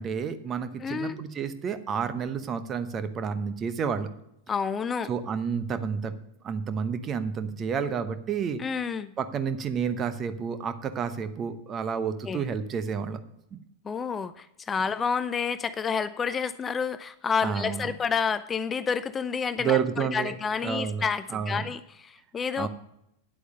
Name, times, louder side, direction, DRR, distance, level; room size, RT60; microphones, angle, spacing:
voice 1, 0.0-4.1 5.1-6.2 6.4-8.6 9.2-13.2 13.5-13.6 17.4-17.9 19.6-20.3 20.6-21.0 21.3-21.7 22.6-22.7, right 6 dB, 25° right, 12 dB, 0.8 m, -30 dB
voice 2, 0.8-1.2 4.5-5.1 8.6-9.1 12.3-12.5 13.8-22.7, left 6 dB, 20° left, 13 dB, 0.4 m, -29 dB
10.0 x 8.2 x 5.4 m, 0.80 s
figure-of-eight pair, 90°, 0 cm